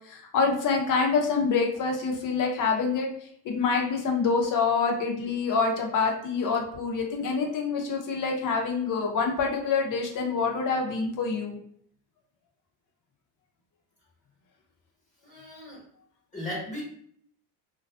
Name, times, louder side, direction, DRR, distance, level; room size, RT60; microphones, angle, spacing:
voice 1, 0.1-3.1 3.4-11.6, left 4 dB, 40° left, 2 dB, 0.7 m, -26 dB
voice 2, 15.2-15.8 16.3-16.8, left 1 dB, 15° left, -4 dB, 1.2 m, -36 dB
2.4 x 2.3 x 2.3 m, 0.63 s
hypercardioid pair, 70°, 49 cm